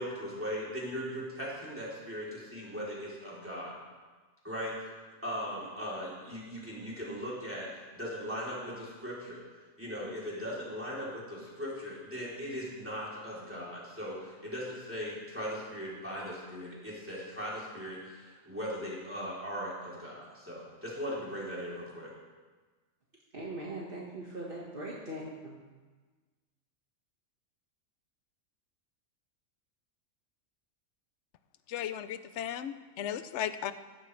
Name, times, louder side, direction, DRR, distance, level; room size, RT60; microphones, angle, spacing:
voice 1, 0.0-3.7 4.4-4.8 5.2-7.7 8.0-9.4 9.8-22.1, equal, 10° right, -7 dB, 3.4 m, -39 dB
voice 2, 23.3-25.6, right 1 dB, 45° right, -5 dB, 1.8 m, -40 dB
voice 3, 31.7-33.7, left 10 dB, 65° left, 12 dB, 0.9 m, -36 dB
16.0 x 12.0 x 3.3 m, 1.3 s
omnidirectional pair, 1.4 m